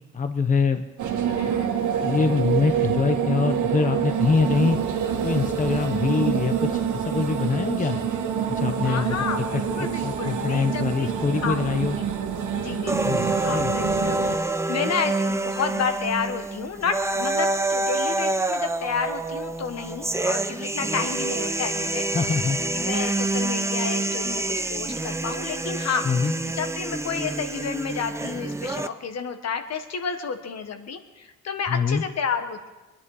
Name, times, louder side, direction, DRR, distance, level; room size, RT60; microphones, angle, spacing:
voice 1, 0.1-0.8 2.0-4.8 5.2-8.0 8.5-9.3 9.8-12.0 13.0-13.7 22.1-22.6 26.0-26.3 31.7-32.0, left 5 dB, 25° left, 8 dB, 0.8 m, -24 dB
sound 1, 1.0-14.4, right 8 dB, 75° right, 1.6 m, -26 dB
voice 2, 1.4-1.7 8.8-11.1 11.4-11.9 12.6-22.0 22.6-26.1 26.5-32.7, left 6 dB, 60° left, 7 dB, 1.4 m, -31 dB
sound 2, 12.9-28.9, right 2 dB, 10° right, 0.6 m, -27 dB
22.0 x 10.0 x 4.9 m, 1.2 s
cardioid pair, 90°, 30 cm